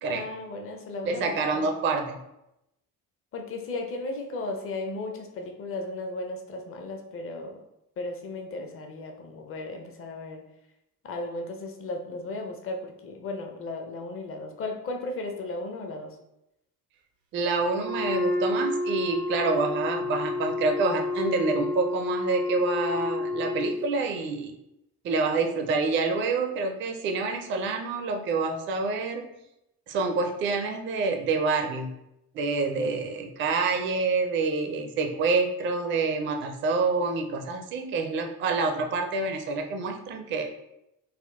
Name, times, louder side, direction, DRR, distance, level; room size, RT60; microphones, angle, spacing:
voice 1, 0.1-1.7 3.3-7.6 8.0-10.4 11.0-16.2, left 2 dB, 30° left, 3 dB, 0.5 m, -35 dB
voice 2, 1.0-2.2 17.3-24.5 25.0-29.3 29.9-31.9 32.3-40.5, right 4 dB, 25° right, 4 dB, 0.4 m, -27 dB
Wind instrument woodwind instrument, 17.7-23.8, left 2 dB, 85° right, 0.5 m, -30 dB
3.5 x 2.2 x 2.3 m, 0.86 s
figure-of-eight pair, 50°, 47 cm